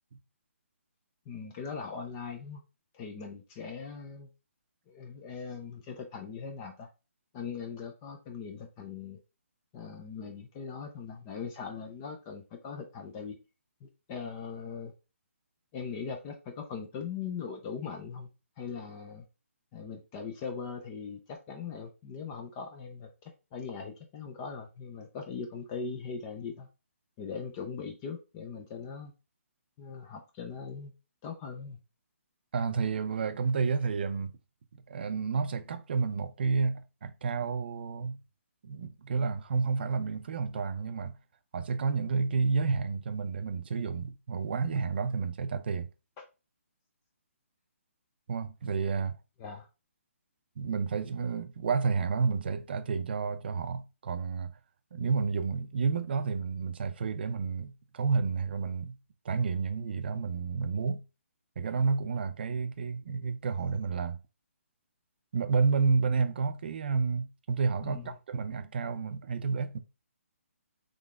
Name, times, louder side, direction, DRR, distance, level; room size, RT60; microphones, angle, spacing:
voice 1, 1.3-2.6 2.9-4.3 4.9-6.9 7.3-9.2 9.7-13.4 13.8-14.9 15.7-18.3 18.6-19.3 19.7-26.7 27.2-29.1 29.8-30.9 31.2-31.8 49.4-49.7 67.8-68.1, left 5 dB, 15° left, 0.4 m, -40 dB
voice 2, 32.5-34.3 34.9-38.2 38.6-41.2 41.5-45.9 48.3-49.2 50.6-54.5 54.9-59.0 59.2-61.0 61.6-64.2 65.3-69.8, right 5 dB, 45° right, 0.5 m, -30 dB
3.9 x 3.2 x 3.5 m
hypercardioid pair, 165°, 8 cm